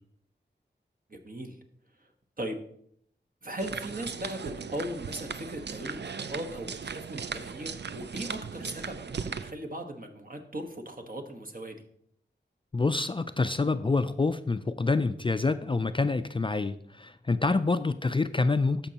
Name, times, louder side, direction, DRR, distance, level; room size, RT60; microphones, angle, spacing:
voice 1, 1.1-1.6 2.0-2.1 2.4-2.6 3.4-11.8, right 1 dB, 45° right, 4 dB, 1.2 m, -38 dB
sound 1, 3.6-9.5, right 6 dB, 65° right, 0.5 m, -38 dB
voice 2, 12.7-18.9, left 3 dB, 25° left, 11 dB, 0.3 m, -27 dB
14.0 x 5.3 x 2.9 m, 0.68 s
wide cardioid pair, 55°, 19 cm